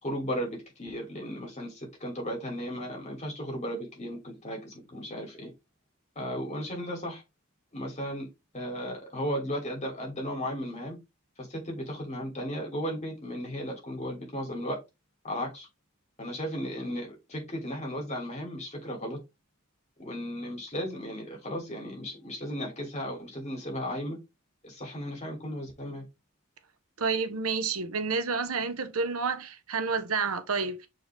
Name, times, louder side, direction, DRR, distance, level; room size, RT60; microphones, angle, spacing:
voice 1, 0.0-5.5 6.1-7.2 7.7-8.3 8.5-11.0 11.4-14.8 15.2-15.7 16.2-19.2 20.0-24.2 24.6-26.1, equal, 35° left, 3.2 m, -35 dB
voice 2, 27.0-30.9, right 4 dB, 85° right, 1.1 m, -29 dB
6.6 x 4.6 x 3.5 m
head